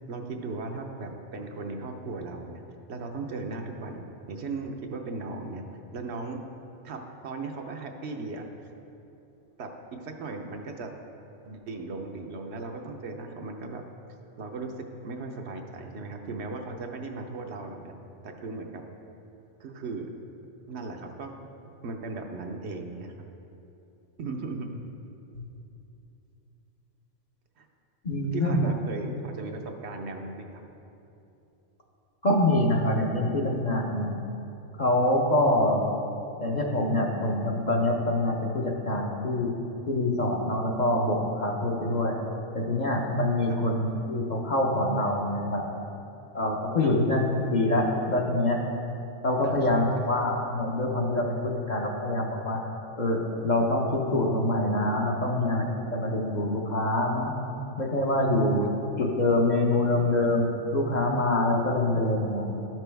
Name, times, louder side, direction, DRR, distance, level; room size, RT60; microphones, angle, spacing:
voice 1, 0.1-2.6 2.9-5.6 5.9-6.4 6.8-8.7 9.6-10.9 11.4-13.8 14.4-17.9 18.2-18.8 19.6-20.1 20.7-21.4 21.8-23.3 24.2-24.7 27.6-27.7 28.3-30.6 43.5-43.6 46.8-46.9 49.4-50.1 58.6-58.7, right 3 dB, 70° right, 3 dB, 0.9 m, -37 dB
voice 2, 28.0-28.7 32.2-34.1 34.8-35.8 36.4-39.5 39.9-42.2 42.5-45.6 46.3-47.3 47.5-48.6 49.2-52.6 53.0-57.3 57.8-58.7 59.0-60.5 60.7-62.5, left 1 dB, 45° left, -1 dB, 0.8 m, -25 dB
12.0 x 6.0 x 3.4 m, 2.8 s
omnidirectional pair, 1.2 m